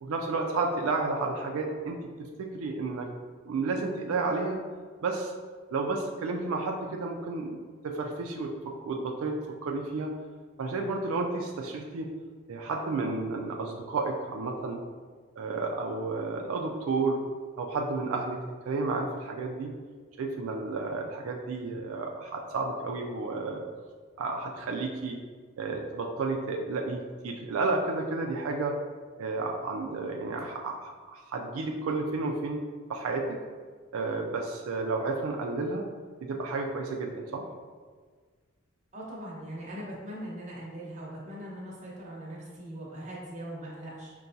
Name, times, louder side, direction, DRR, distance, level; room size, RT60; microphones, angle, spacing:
voice 1, 0.0-3.1 3.5-4.6 5.0-5.3 5.7-7.6 7.8-9.4 9.6-10.1 10.6-12.1 12.5-14.8 15.4-17.2 17.6-18.4 18.7-19.7 20.2-23.6 24.2-25.2 25.6-28.8 29.2-32.6 32.9-33.4 33.9-35.9 36.2-37.4, right 3 dB, 90° right, 1 dB, 0.4 m, -31 dB
voice 2, 38.9-44.1, right 1 dB, 35° right, -5 dB, 0.9 m, -40 dB
5.6 x 2.3 x 2.6 m, 1.5 s
head